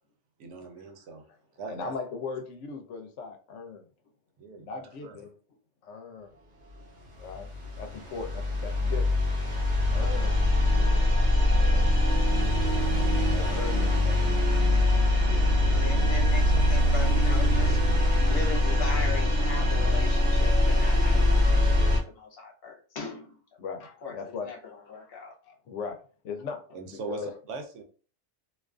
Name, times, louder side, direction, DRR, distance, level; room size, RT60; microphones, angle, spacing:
voice 1, 0.4-1.2 1.6-1.9 4.4-5.2 18.0-18.1 26.7-27.8, right 4 dB, 85° right, 5 dB, 0.9 m, -41 dB
voice 2, 1.7-3.9 4.6-5.3 5.8-6.3 7.2-7.5 7.8-9.1 9.9-10.5 10.8-11.0 11.5-11.8 13.3-14.2 15.2-15.5 23.6-25.2 25.4-26.0 26.2-26.6 26.9-27.3, left 5 dB, 85° left, 5 dB, 0.9 m, -39 dB
sound 1, 7.1-22.0, left 1 dB, 60° right, 0.9 m, -23 dB
voice 3, 11.4-11.8 14.0-14.6 14.9-17.8 18.3-23.4 24.0-25.3, left 4 dB, 60° left, -2 dB, 0.9 m, -40 dB
2.4 x 2.4 x 2.3 m, 0.40 s
omnidirectional pair, 1.2 m